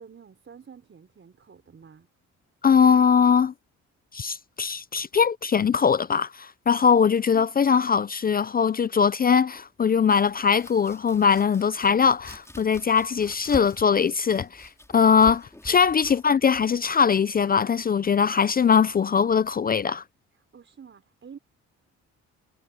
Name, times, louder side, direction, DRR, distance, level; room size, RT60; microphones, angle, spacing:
voice 1, 0.0-2.1 6.9-7.0 15.7-16.2 20.3-21.4, right 6 dB, 40° right, 5.2 m, -49 dB
voice 2, 2.6-3.5 4.1-20.0, left 6 dB, 30° left, 0.5 m, -21 dB
Domestic sounds home sounds, 10.2-17.9, left 1 dB, 10° left, 4.0 m, -46 dB
cardioid pair, 90°, 30 cm